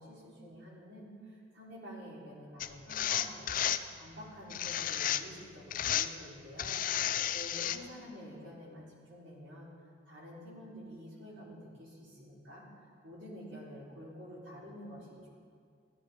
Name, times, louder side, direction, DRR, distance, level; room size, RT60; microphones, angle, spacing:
voice 1, 0.0-3.6 3.9-9.7 10.1-15.3, equal, 70° right, -6 dB, 4.2 m, -49 dB
sound 1, 2.6-3.8 4.5-5.4 5.7-6.1 6.6-7.8, left 10 dB, 45° left, 0.4 m, -32 dB
15.5 x 12.5 x 4.5 m, 2.2 s
head